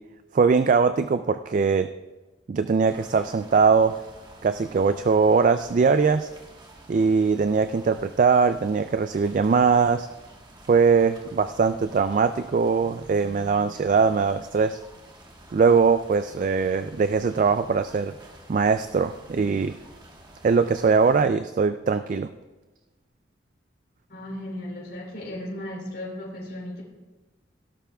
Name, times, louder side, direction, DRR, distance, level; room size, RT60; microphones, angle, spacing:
voice 1, 0.3-1.9 2.5-4.0 4.4-6.3 6.9-10.1 10.7-14.8 15.5-18.1 18.5-19.8 20.4-22.3, right 5 dB, 45° right, 10 dB, 0.3 m, -21 dB
sound 1, 2.9-21.3, right 1 dB, 25° right, 1.3 m, -50 dB
voice 2, 24.1-26.8, left 1 dB, 55° left, -3 dB, 3.6 m, -35 dB
17.5 x 12.0 x 2.3 m, 1.2 s
head